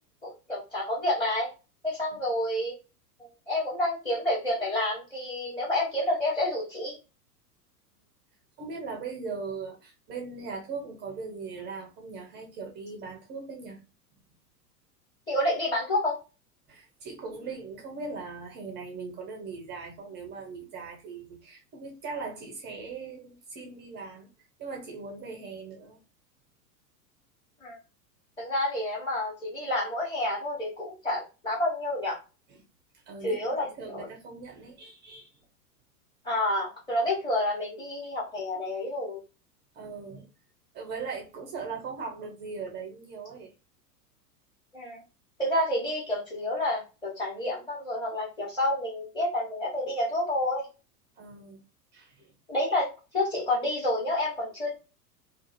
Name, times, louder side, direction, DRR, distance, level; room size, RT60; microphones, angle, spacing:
voice 1, 0.2-1.5 1.8-2.7 3.2-7.0 15.3-16.2 27.6-27.8 28.4-32.2 33.2-33.6 33.9-34.1 36.2-39.2 44.7-45.0 45.4-50.7 52.5-52.9 53.1-54.7, left 1 dB, 10° left, -6 dB, 1.1 m, -29 dB
voice 2, 8.6-13.8 16.7-24.3 24.6-26.0 32.5-32.6 32.9-33.4 33.8-35.4 39.7-40.3 40.7-43.5 51.2-51.6 51.9-52.3, right 4 dB, 20° right, 1 dB, 0.5 m, -39 dB
2.4 x 2.4 x 2.5 m, 0.31 s
figure-of-eight pair, 95°, 48 cm